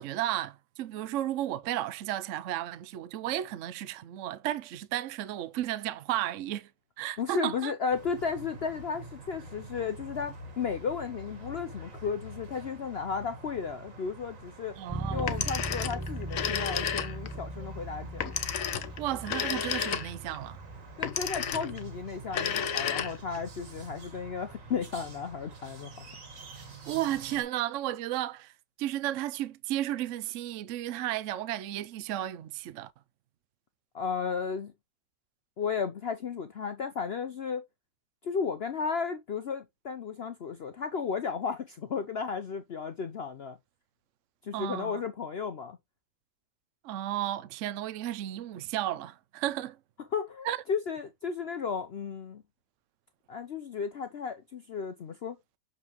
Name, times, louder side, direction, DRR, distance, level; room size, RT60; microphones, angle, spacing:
voice 1, 0.0-6.7 7.0-7.7 14.8-15.3 19.0-20.6 26.9-28.5 28.8-32.9 44.5-45.0 46.8-49.8 50.4-50.6, right 13 dB, 75° right, 0.7 m, -33 dB
voice 2, 7.2-14.8 15.1-18.3 21.0-26.0 33.9-34.7 35.6-37.6 38.2-43.6 44.4-45.8 50.1-52.4 53.3-55.4, left 6 dB, 75° left, 0.5 m, -34 dB
sound 1, 7.9-27.4, right 2 dB, 50° right, 1.9 m, -47 dB
Bass guitar, 14.9-24.6, right 2 dB, 20° right, 0.4 m, -41 dB
Telephone, 15.2-17.4 18.2-20.4 21.0-21.8 22.2-23.4, left 8 dB, 55° left, 1.1 m, -32 dB
6.8 x 5.3 x 2.9 m
omnidirectional pair, 1.9 m